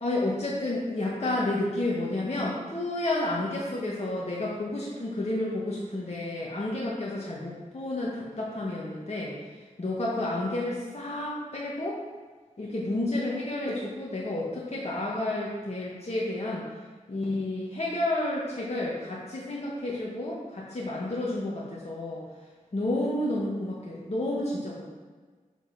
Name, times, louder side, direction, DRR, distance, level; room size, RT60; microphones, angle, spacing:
voice 1, 0.0-12.0 12.6-16.7 17.1-22.2 22.7-24.9, left 1 dB, 50° left, -6 dB, 1.8 m, -31 dB
7.5 x 7.1 x 4.4 m, 1.4 s
wide cardioid pair, 55°, 14 cm